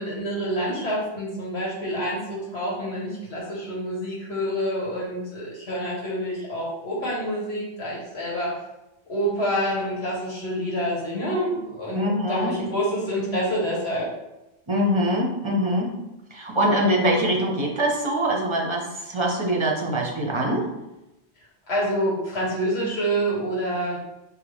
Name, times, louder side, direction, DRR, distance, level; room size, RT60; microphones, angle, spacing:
voice 1, 0.0-8.5 9.1-14.1 21.7-24.0, equal, 75° left, -4 dB, 1.7 m, -27 dB
voice 2, 11.9-12.6 14.7-16.0 16.3-20.7, equal, 30° right, -1 dB, 0.8 m, -23 dB
5.1 x 3.0 x 3.5 m, 0.95 s
omnidirectional pair, 1.1 m